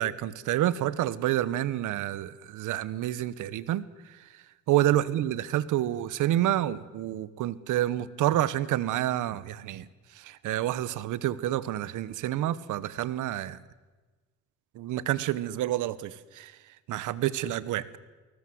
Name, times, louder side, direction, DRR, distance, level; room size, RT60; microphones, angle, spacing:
voice 1, 0.0-3.8 4.7-9.9 10.3-13.6 14.8-16.5 16.9-18.0, right 13 dB, 85° right, 18 dB, 1.2 m, -28 dB
29.0 x 19.5 x 7.9 m, 1.2 s
cardioid pair, 90°, 30 cm